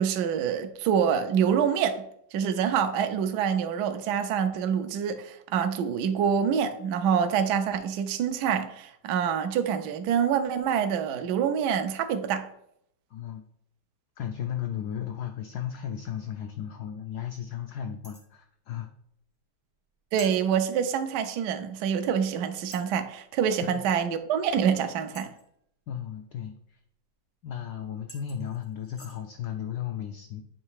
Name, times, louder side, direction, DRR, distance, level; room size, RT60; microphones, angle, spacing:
voice 1, 0.0-2.0 2.3-12.5 20.1-25.3, right 8 dB, 70° right, 1.0 m, -26 dB
voice 2, 13.1-13.4 14.2-18.9 23.6-23.8 25.9-26.8 27.4-30.4, left 9 dB, 85° left, 0.8 m, -35 dB
sound 1, 18.0-18.3 20.2-20.4 21.8-21.9 22.7-23.0 25.1-25.6 27.6-27.7 28.1-29.2, left 1 dB, 20° left, 0.3 m, -48 dB
7.6 x 3.2 x 4.7 m
omnidirectional pair, 2.3 m